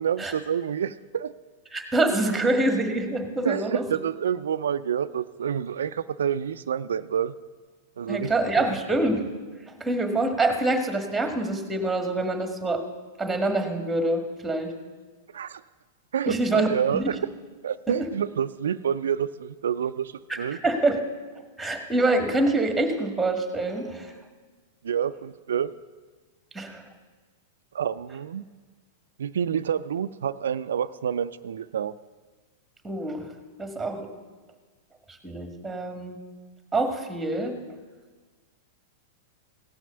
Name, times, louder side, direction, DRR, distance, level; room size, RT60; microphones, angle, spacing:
voice 1, 0.0-1.3 3.4-7.3 8.0-8.8 15.3-15.6 16.1-17.2 17.6-20.6 24.8-25.7 27.7-28.4 29.2-31.9, right 8 dB, 85° right, 12 dB, 0.3 m, -28 dB
voice 2, 1.7-3.9 8.1-9.2 9.8-12.8 13.2-14.7 16.3-17.1 17.9-18.0 20.3-20.4 20.6-21.0 21.6-24.1 26.5-26.8 32.8-33.3 33.6-34.1 35.2-36.2 36.7-37.6, right 2 dB, 5° right, 6 dB, 1.7 m, -25 dB
16.5 x 6.2 x 6.8 m, 1.4 s
hypercardioid pair, 125°, 0 cm